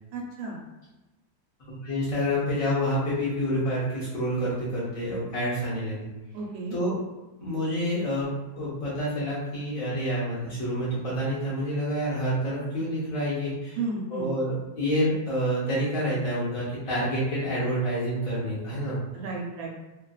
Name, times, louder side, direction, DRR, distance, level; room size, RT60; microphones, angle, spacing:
voice 1, 0.1-0.6 6.3-6.8 13.8-14.3 19.1-19.7, right 3 dB, 80° right, -2 dB, 1.5 m, -33 dB
voice 2, 1.7-6.1 6.7-7.0 7.4-8.3 8.6-13.8 14.1-19.0, equal, 55° left, -8 dB, 1.2 m, -28 dB
3.4 x 2.4 x 2.3 m, 1.1 s
omnidirectional pair, 2.1 m